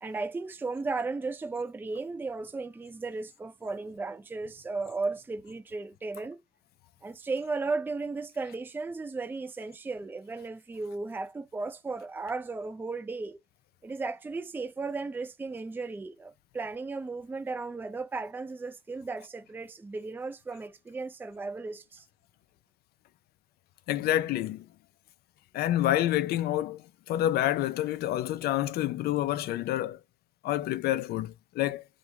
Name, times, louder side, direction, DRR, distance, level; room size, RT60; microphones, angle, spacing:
voice 1, 0.0-6.4 7.0-13.4 13.8-22.0, right 3 dB, 10° right, 0.4 m, -35 dB
voice 2, 23.9-24.6 25.5-30.0 30.4-31.8, left 13 dB, 70° left, 0.4 m, -28 dB
2.4 x 2.2 x 2.8 m
cardioid pair, 110°, 17 cm